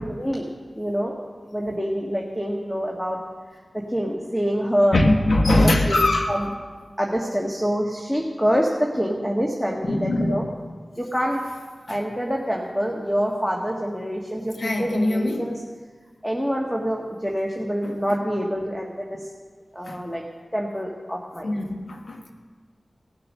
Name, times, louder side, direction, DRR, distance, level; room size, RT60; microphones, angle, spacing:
voice 1, 0.1-0.5 0.7-1.2 1.5-3.2 3.7-5.0 5.5-6.0 6.3-6.5 7.0-10.4 11.0-11.4 11.9-15.5 16.2-19.3 19.7-20.2 20.5-21.5, equal, 10° left, -1 dB, 1.6 m, -26 dB
voice 2, 4.9-6.4 9.8-10.5 11.9-12.0 14.6-15.5 17.8-17.9 19.8-20.0 21.4-22.3, left 1 dB, 80° left, 3 dB, 1.3 m, -22 dB
18.0 x 6.8 x 6.5 m, 1.5 s
cardioid pair, 45°, 0 cm